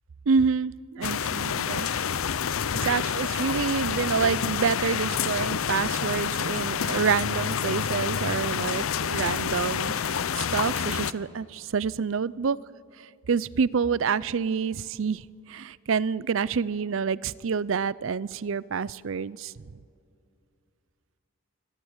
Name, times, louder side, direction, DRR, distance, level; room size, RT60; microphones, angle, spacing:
voice 1, 0.3-1.9 2.8-12.6 13.0-19.5, right 6 dB, 65° right, 21 dB, 0.5 m, -28 dB
sound 1, 1.0-11.1, left 7 dB, 75° left, 0.6 m, -28 dB
24.5 x 18.0 x 8.1 m, 2.4 s
head